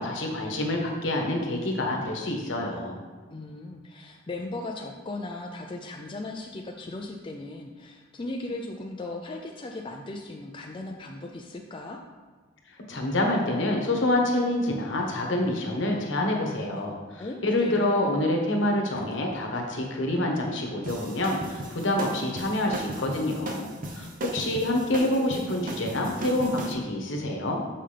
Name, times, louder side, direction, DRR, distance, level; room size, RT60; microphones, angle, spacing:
voice 1, 0.0-3.0 12.9-27.6, left 1 dB, 65° left, 0 dB, 1.1 m, -27 dB
voice 2, 3.3-12.0 17.2-18.1, left 2 dB, 25° left, 1 dB, 0.4 m, -37 dB
sound 1, 20.8-26.7, right 1 dB, 45° right, 0.7 m, -36 dB
6.6 x 5.7 x 3.3 m, 1.4 s
head